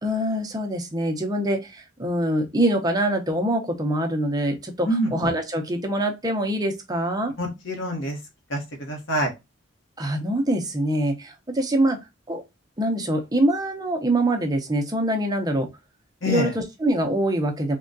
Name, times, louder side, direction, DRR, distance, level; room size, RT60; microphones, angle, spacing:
voice 1, 0.0-7.3 10.0-12.0 12.3-12.4 12.8-15.7 16.3-17.8, right 1 dB, 20° right, 0.6 m, -24 dB
voice 2, 7.4-8.2 8.5-9.3 16.2-16.5, equal, 70° left, 0.9 m, -26 dB
3.6 x 2.2 x 2.5 m
head